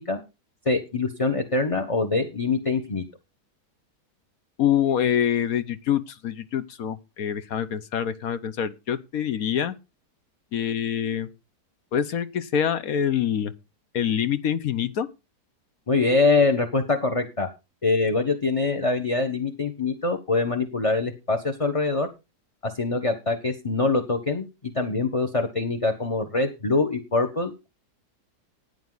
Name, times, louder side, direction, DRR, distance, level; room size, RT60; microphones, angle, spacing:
voice 1, 0.6-3.0 15.9-17.5 17.8-22.1 22.6-24.5 24.7-27.5, left 3 dB, 20° left, 1.1 m, -24 dB
voice 2, 4.6-9.7 10.5-11.3 11.9-13.5 13.9-15.1, left 9 dB, 60° left, 1.3 m, -25 dB
14.5 x 9.4 x 4.0 m
omnidirectional pair, 1.8 m